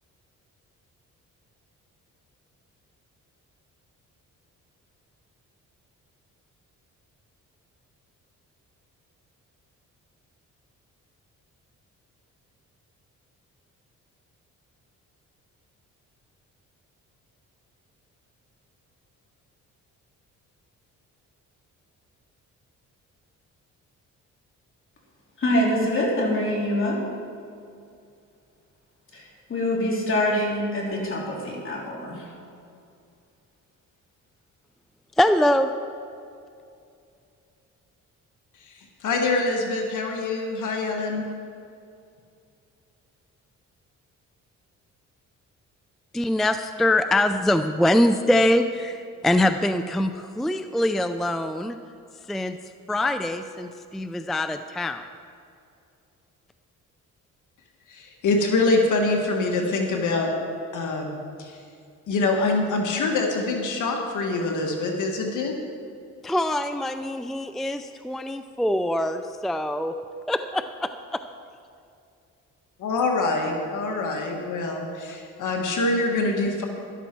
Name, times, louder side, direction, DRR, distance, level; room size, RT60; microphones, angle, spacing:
voice 1, 25.4-27.0 29.1-32.3, left 1 dB, 40° left, -3 dB, 3.5 m, -25 dB
voice 2, 35.2-35.7 46.1-51.8 52.3-52.6 52.9-55.0 66.2-69.9 70.3-71.2, left 1 dB, ahead, 9 dB, 0.4 m, -23 dB
voice 3, 38.6-41.3 57.9-60.3 60.7-61.6 62.1-65.6 72.8-76.6, left 3 dB, 75° left, 2 dB, 1.7 m, -25 dB
13.0 x 12.0 x 4.6 m, 2.5 s
cardioid pair, 100°, 31 cm